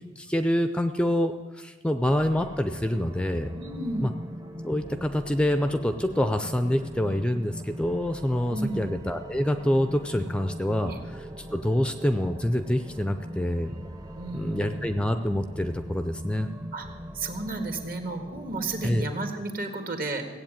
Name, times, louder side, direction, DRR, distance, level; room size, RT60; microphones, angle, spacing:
voice 1, 0.2-3.5 4.0-4.1 4.6-13.7 14.3-16.5 18.8-19.1, left 1 dB, 5° left, 9 dB, 0.5 m, -26 dB
sound 1, 2.0-19.0, equal, 20° right, 0.8 m, -41 dB
voice 2, 3.5-4.1 8.5-9.0 10.9-11.0 14.2-14.9 16.7-16.9 17.1-20.2, right 2 dB, 55° right, 5 dB, 1.9 m, -32 dB
16.5 x 8.1 x 8.9 m, 1.3 s
head